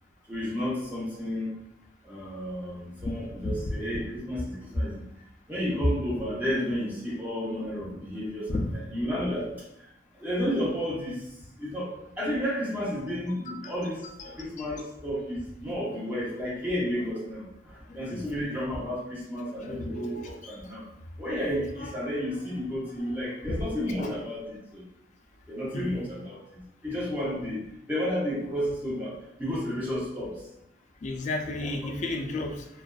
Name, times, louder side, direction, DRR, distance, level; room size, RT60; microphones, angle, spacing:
voice 1, 0.3-1.6 2.0-5.0 5.5-9.5 10.2-11.3 11.6-20.8 21.2-24.8 25.5-30.5 31.6-31.7, equal, 10° right, -7 dB, 0.8 m, -32 dB
voice 2, 13.3-13.7 14.2-14.3 14.6-14.7 17.9-18.2 19.6-20.3 21.8-21.9 23.1-23.2 24.0-24.1 25.7-25.9 31.0-32.7, left 2 dB, 40° left, 4 dB, 0.3 m, -33 dB
2.4 x 2.3 x 2.3 m, 0.80 s
head